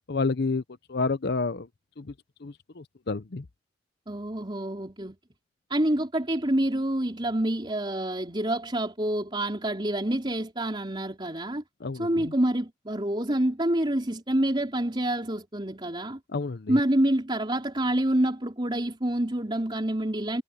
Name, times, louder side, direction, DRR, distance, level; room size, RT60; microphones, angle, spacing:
voice 1, 0.1-0.6 0.9-1.7 2.0-2.1 2.4-3.4 11.8-12.3 16.3-16.8, left 3 dB, 60° left, 0.7 m, -29 dB
voice 2, 4.1-5.2 5.7-11.6 11.9-16.2 16.7-20.4, right 1 dB, 25° right, 4.1 m, -27 dB
head